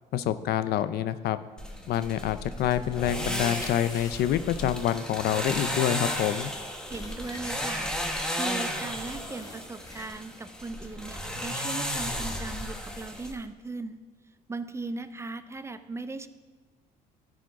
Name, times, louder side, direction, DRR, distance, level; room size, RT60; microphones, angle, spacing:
voice 1, 0.1-1.4 1.9-6.5, left 11 dB, 70° left, 13 dB, 0.5 m, -27 dB
sound 1, 1.6-13.3, equal, 5° left, 1.2 m, -34 dB
sound 2, 1.9-3.2 3.6-8.8 9.1-10.5 10.9-11.4, left 3 dB, 20° left, 0.7 m, -49 dB
voice 2, 6.9-7.9 8.3-14.0 14.5-16.3, right 3 dB, 15° right, 11 dB, 0.4 m, -38 dB
13.0 x 5.0 x 4.7 m, 1.4 s
cardioid pair, 110°, 17 cm